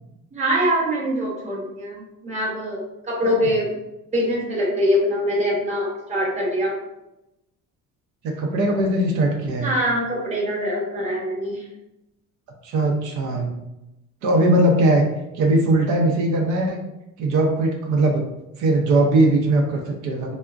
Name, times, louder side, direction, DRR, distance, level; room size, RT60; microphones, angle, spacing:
voice 1, 0.3-3.7 4.1-6.7 9.6-11.6, equal, 20° right, -3 dB, 0.8 m, -23 dB
voice 2, 8.2-9.7 12.6-13.5 14.2-15.0 15.3-16.8 17.2-18.2 18.6-20.4, right 2 dB, 70° right, 0 dB, 0.6 m, -20 dB
3.3 x 2.1 x 2.4 m, 0.92 s
cardioid pair, 140°, 32 cm